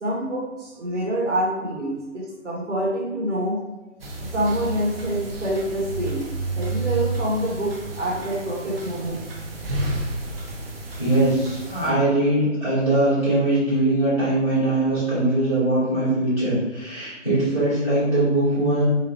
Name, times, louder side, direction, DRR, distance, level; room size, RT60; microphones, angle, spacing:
voice 1, 0.0-3.6 4.3-6.2 6.6-9.2, right 1 dB, 65° right, -3 dB, 1.4 m, -26 dB
sound 1, 4.0-11.9, right 2 dB, 50° right, 0.7 m, -31 dB
voice 2, 11.0-18.8, right 1 dB, ahead, -27 dB, 0.6 m, -21 dB
4.0 x 2.5 x 3.2 m, 1.1 s
figure-of-eight pair, 150°, 38 cm